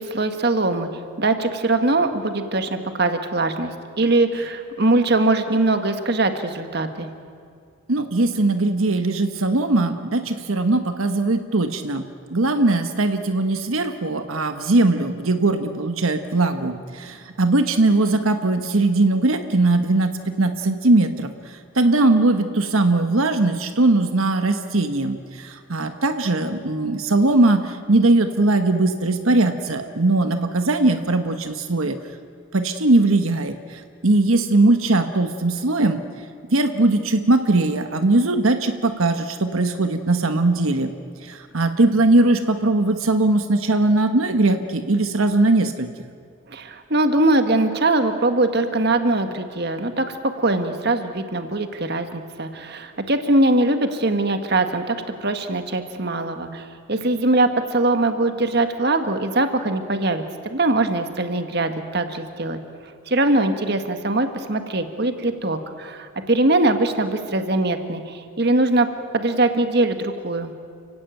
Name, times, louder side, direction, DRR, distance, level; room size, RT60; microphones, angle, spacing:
voice 1, 0.0-7.1 46.5-62.6 63.1-70.5, right 2 dB, 50° right, 7 dB, 1.7 m, -22 dB
voice 2, 7.9-12.1 12.3-21.3 21.7-32.0 32.5-36.0 36.5-40.9 41.2-45.9, right 2 dB, 85° right, 7 dB, 1.3 m, -20 dB
29.5 x 16.5 x 9.1 m, 2.2 s
head